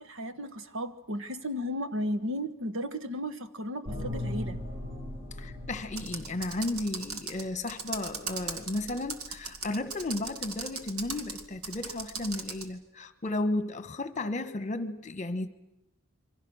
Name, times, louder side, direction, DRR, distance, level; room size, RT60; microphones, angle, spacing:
voice 1, 0.0-4.6, equal, 65° right, 1.5 m, -34 dB
sound 1, 3.8-7.2, left 1 dB, 30° right, 5.4 m, -38 dB
voice 2, 5.4-15.5, left 2 dB, 35° left, 1.5 m, -34 dB
Computer keyboard, 5.9-12.7, right 5 dB, 85° right, 2.2 m, -39 dB
27.5 x 24.0 x 6.5 m
head